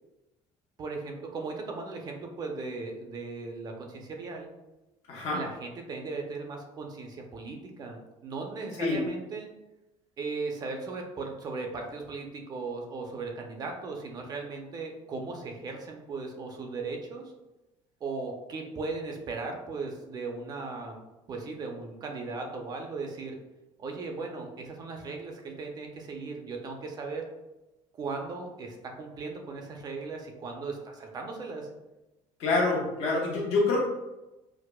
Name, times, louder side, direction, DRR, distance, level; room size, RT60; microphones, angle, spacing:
voice 1, 0.8-4.5 5.3-9.5 10.2-17.3 18.0-21.0 21.3-23.4 23.8-27.3 27.9-31.7, right 3 dB, 35° right, 2 dB, 0.6 m, -37 dB
voice 2, 5.1-5.4 8.8-9.0 32.4-33.8, left 3 dB, 65° left, -5 dB, 1.0 m, -26 dB
4.6 x 2.0 x 2.2 m, 1.0 s
cardioid pair, 130°, 11 cm